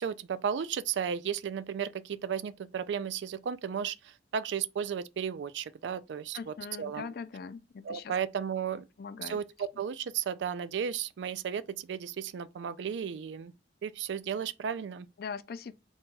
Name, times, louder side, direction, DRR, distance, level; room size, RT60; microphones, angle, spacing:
voice 1, 0.0-7.1 7.8-8.8 9.2-13.5 13.8-15.1, right 7 dB, 80° right, 0.3 m, -34 dB
voice 2, 6.3-8.1 9.0-9.4 15.2-15.7, left 5 dB, 55° left, 0.4 m, -41 dB
3.9 x 2.3 x 3.8 m
head